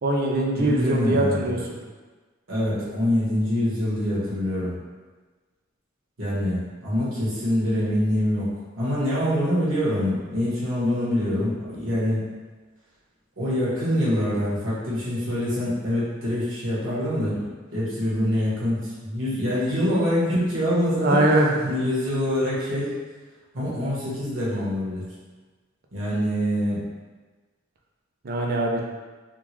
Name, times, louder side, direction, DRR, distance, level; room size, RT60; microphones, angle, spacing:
voice 1, 0.0-1.6 21.0-21.6 28.2-28.8, right 1 dB, 50° right, 0 dB, 0.5 m, -22 dB
voice 2, 0.6-1.6 2.5-4.8 6.2-8.5 8.7-12.2 13.4-21.2 21.6-22.9 23.5-25.1 25.9-26.8, equal, 70° right, -8 dB, 1.3 m, -25 dB
3.6 x 2.4 x 3.0 m, 1.3 s
head